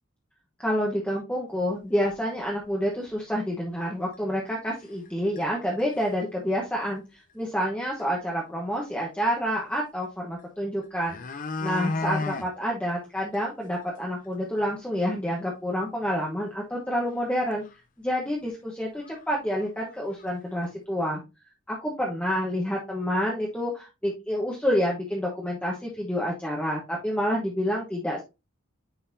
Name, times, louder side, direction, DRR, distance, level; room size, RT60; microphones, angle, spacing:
voice 1, 0.6-11.2 11.6-17.6 18.0-21.2 21.7-28.2, equal, 5° left, -3 dB, 1.0 m, -28 dB
sound 1, 2.1-2.2 2.6-2.7 3.1-3.2 4.1-4.2 4.8-5.1 5.4-5.5 5.8-6.2 7.6-7.7 8.0-8.1 10.4-10.5 10.8-12.5 12.9-13.0 13.3-13.4 13.8-13.9 14.2-14.3 17.2-17.3 17.6-17.7 18.5-18.6 19.0-19.2 19.5-20.3 20.6-20.7, left 3 dB, 40° left, 0.6 m, -33 dB
9.7 x 3.9 x 2.7 m, 0.26 s
head